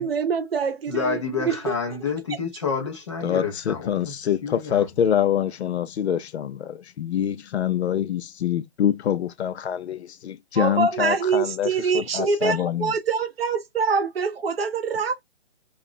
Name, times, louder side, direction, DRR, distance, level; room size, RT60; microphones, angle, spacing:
voice 1, 0.0-1.7 10.5-15.2, right 5 dB, 65° right, 0.7 m, -25 dB
voice 2, 0.9-4.1 4.4-4.9, left 5 dB, 30° left, 0.7 m, -29 dB
voice 3, 3.2-12.9, left 9 dB, 85° left, 0.5 m, -25 dB
2.4 x 2.0 x 3.7 m
hypercardioid pair, 170°, 32 cm